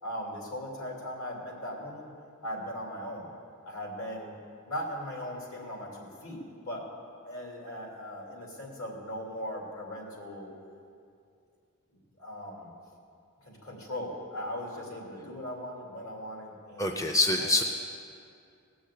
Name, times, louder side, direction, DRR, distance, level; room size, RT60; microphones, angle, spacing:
voice 1, 0.0-2.1 2.4-3.3 3.7-4.4 4.7-6.8 7.2-10.5 12.2-12.7 13.4-17.0 17.4-17.6, equal, 65° left, -2 dB, 2.9 m, -39 dB
voice 2, 16.8-17.6, left 2 dB, 15° left, 3 dB, 0.5 m, -25 dB
18.0 x 6.3 x 8.4 m, 2.4 s
head